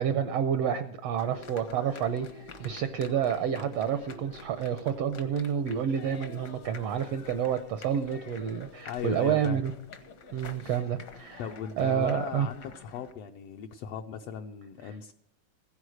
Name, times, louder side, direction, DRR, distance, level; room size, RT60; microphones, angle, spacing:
voice 1, 0.0-9.7 10.3-11.4 11.8-12.5, right 8 dB, 75° right, 9 dB, 1.5 m, -29 dB
sound 1, 1.2-13.1, left 4 dB, 65° left, 1.0 m, -48 dB
voice 2, 8.9-9.6 11.4-15.1, left 8 dB, 80° left, 4 dB, 1.4 m, -37 dB
16.0 x 9.7 x 6.3 m, 0.77 s
omnidirectional pair, 3.6 m